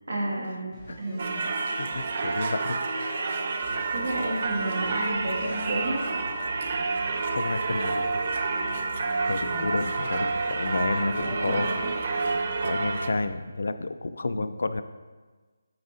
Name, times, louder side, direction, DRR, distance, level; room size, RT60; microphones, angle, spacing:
voice 1, 0.1-1.4 2.2-2.4 3.9-6.0 9.3-9.7 11.0-11.9 14.3-14.4, right 1 dB, 75° right, -3 dB, 1.7 m, -32 dB
sound 1, 0.7-13.3 13.5-13.6, right 2 dB, 15° right, 0.7 m, -44 dB
Singing / Church bell, 1.2-13.1, right 3 dB, 40° right, 0.4 m, -29 dB
voice 2, 1.6-2.8 7.3-8.3 9.2-11.7 12.1-14.8, left 3 dB, 65° left, 11 dB, 0.3 m, -31 dB
7.8 x 4.7 x 2.7 m, 1.4 s
hypercardioid pair, 170°, 0 cm